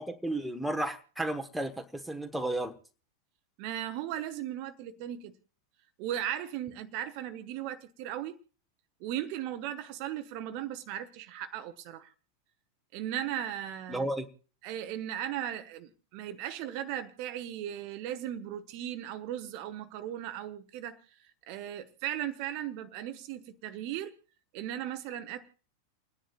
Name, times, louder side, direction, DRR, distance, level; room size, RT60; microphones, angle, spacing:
voice 1, 0.0-2.7 13.9-14.3, right 1 dB, ahead, 1.2 m, -33 dB
voice 2, 3.6-5.3 6.0-8.4 9.0-12.1 12.9-14.1 14.6-21.0 21.5-24.1 24.5-25.5, right 11 dB, 45° right, 0.8 m, -37 dB
29.5 x 10.0 x 2.4 m
figure-of-eight pair, 90°, 0 cm